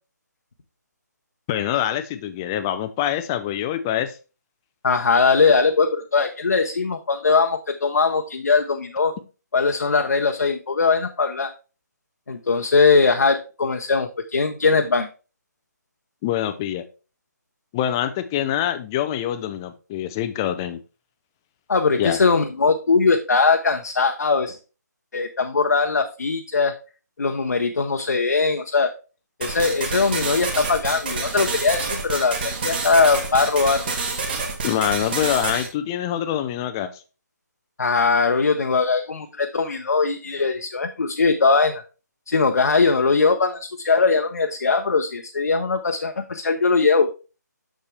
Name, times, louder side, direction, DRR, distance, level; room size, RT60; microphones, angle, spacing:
voice 1, 1.5-4.2 16.2-16.8 17.7-20.8 22.0-22.2 34.6-37.0, left 11 dB, 10° left, 10 dB, 0.3 m, -25 dB
voice 2, 4.8-9.1 9.5-11.5 12.3-15.1 21.7-24.6 25.1-26.8 27.2-28.9 29.4-33.9 37.8-41.8 42.3-47.1, left 4 dB, 65° left, 4 dB, 0.7 m, -20 dB
sound 1, 29.4-35.7, right 4 dB, 30° right, 1.4 m, -28 dB
7.0 x 6.5 x 3.2 m, 0.32 s
figure-of-eight pair, 150°, 10 cm